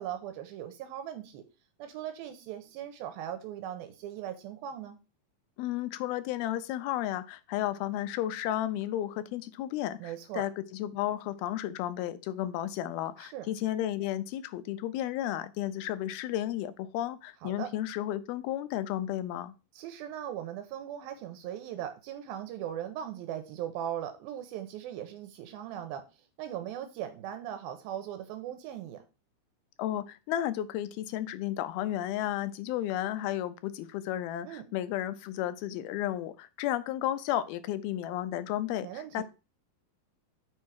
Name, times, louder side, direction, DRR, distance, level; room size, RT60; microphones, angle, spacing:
voice 1, 0.0-1.4 1.8-5.0 10.0-10.5 13.2-13.5 17.4-17.7 19.7-26.0 26.4-29.0 34.4-34.7 38.8-39.2, right 10 dB, 80° right, 8 dB, 2.6 m, -39 dB
voice 2, 5.6-19.5 29.8-39.2, left 12 dB, 85° left, 11 dB, 2.6 m, -33 dB
6.4 x 4.6 x 6.2 m, 0.31 s
omnidirectional pair, 4.3 m